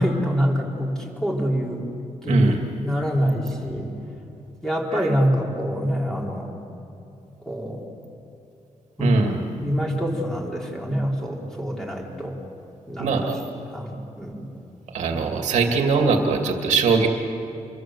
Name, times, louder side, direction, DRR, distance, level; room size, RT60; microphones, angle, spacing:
voice 1, 0.0-1.8 2.2-3.9 4.6-6.5 7.5-7.8 9.0-12.3 12.9-13.3 13.7-14.5, equal, 5° left, -2 dB, 4.4 m, -25 dB
voice 2, 2.3-2.6 9.0-9.4 13.0-13.5 14.9-17.1, right 4 dB, 80° right, 3 dB, 2.5 m, -21 dB
27.5 x 23.0 x 7.9 m, 2.8 s
cardioid pair, 120°, 12 cm